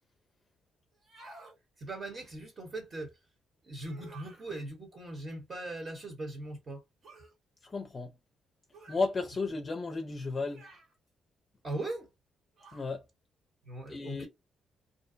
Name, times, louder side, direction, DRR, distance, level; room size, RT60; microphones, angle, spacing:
sound 1, 0.9-1.6 3.8-4.5 7.0-7.3 8.7-9.1 10.5-10.9 12.6-12.9, right 3 dB, 60° right, 1.2 m, -53 dB
voice 1, 1.8-3.1 3.6-6.8 11.6-12.1 13.6-14.3, right 2 dB, 40° right, 1.0 m, -40 dB
voice 2, 7.6-8.1 8.9-10.6 12.7-13.0 13.9-14.3, left 3 dB, 35° left, 0.5 m, -33 dB
2.6 x 2.0 x 2.5 m
cardioid pair, 90°, 0 cm